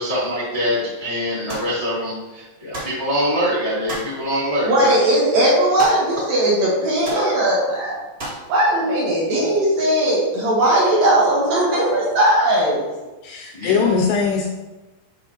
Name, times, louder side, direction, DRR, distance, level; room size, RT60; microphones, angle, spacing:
voice 1, 0.0-4.9 13.5-13.9, equal, 50° left, -10 dB, 0.7 m, -24 dB
sound 1, 1.5-1.7 2.7-3.0 3.9-4.2 5.8-6.2 6.4-6.5 7.0-7.3 8.2-8.5, right 1 dB, 30° right, 1.6 m, -32 dB
voice 2, 4.7-7.9 8.5-12.8, right 1 dB, 60° right, -6 dB, 3.0 m, -18 dB
voice 3, 13.2-14.5, left 5 dB, 85° left, 2 dB, 2.3 m, -20 dB
10.5 x 3.8 x 2.9 m, 1.1 s
omnidirectional pair, 4.9 m